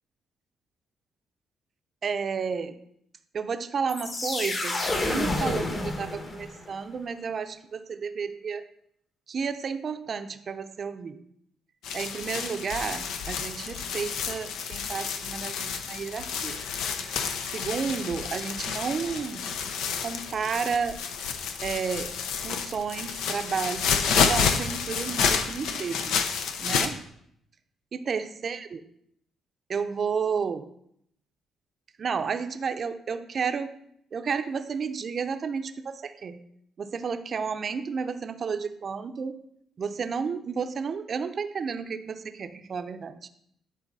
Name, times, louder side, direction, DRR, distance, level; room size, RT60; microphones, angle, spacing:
voice 1, 2.0-2.8 3.3-8.6 9.3-11.2 11.9-16.6 17.5-19.4 20.0-21.0 21.6-22.1 22.4-26.2 26.6-27.0 27.9-28.8 29.7-30.7 32.0-33.7 34.1-36.4 36.8-39.4 39.8-43.3, right 6 dB, 50° right, 9 dB, 0.5 m, -32 dB
sound 1, 3.9-6.7, left 2 dB, 45° left, 1.8 m, -29 dB
sound 2, 11.8-26.9, left 6 dB, 85° left, 0.6 m, -29 dB
9.9 x 4.1 x 4.0 m, 0.72 s
cardioid pair, 90°, 0 cm